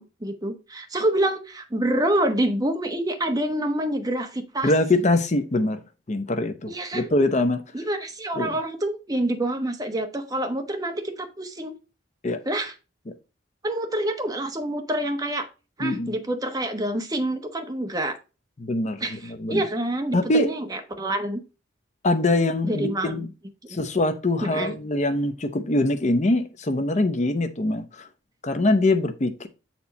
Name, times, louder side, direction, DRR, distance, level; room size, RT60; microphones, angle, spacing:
voice 1, 0.0-5.1 6.7-7.1 7.7-11.7 12.4-12.7 13.6-15.5 15.8-18.2 19.0-19.2 19.5-21.4 22.6-23.2 24.4-24.7, right 1 dB, 20° right, 1.1 m, -27 dB
voice 2, 4.6-5.8 6.1-7.6 8.4-8.5 12.2-12.4 13.1-13.2 15.8-16.1 18.6-19.6 20.1-20.5 22.0-23.3 23.7-28.1 28.4-29.5, left 2 dB, 40° left, 0.7 m, -23 dB
8.3 x 4.4 x 4.0 m
head